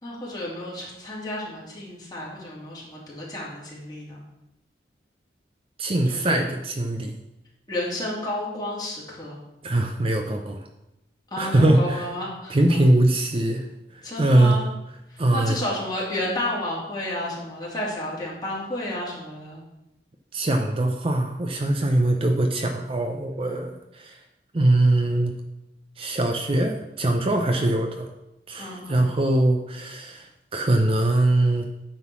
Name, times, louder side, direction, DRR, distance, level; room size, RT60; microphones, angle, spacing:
voice 1, 0.0-4.2 6.1-6.4 7.7-9.4 11.3-12.8 14.0-14.7 15.1-19.6 23.4-23.6 27.5-27.7 28.6-29.1, left 1 dB, 25° left, -5 dB, 2.5 m, -31 dB
voice 2, 5.8-7.2 9.6-10.6 11.4-12.1 12.5-13.6 14.2-14.6 15.2-15.6 20.3-24.2 24.5-25.3 26.0-28.1 28.5-31.7, right 1 dB, 35° right, 4 dB, 0.6 m, -22 dB
9.5 x 3.8 x 6.1 m, 0.91 s
head